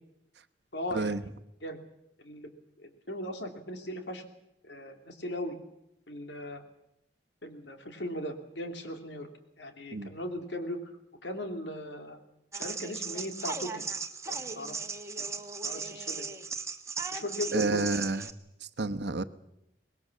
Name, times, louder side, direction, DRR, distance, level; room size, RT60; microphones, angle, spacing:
voice 1, 0.7-1.1 1.6-1.8 2.2-2.5 2.8-4.2 4.6-5.5 6.1-6.6 7.4-9.3 9.6-10.8 11.2-12.2 12.5-13.8 14.3-14.8 15.6-16.2 17.1-17.8, left 1 dB, 75° left, 3.0 m, -38 dB
sound 1, 12.5-18.3, right 4 dB, 15° right, 1.4 m, -37 dB
voice 2, 17.5-18.2 18.8-19.2, right 3 dB, 65° right, 1.0 m, -29 dB
24.0 x 20.0 x 7.3 m
head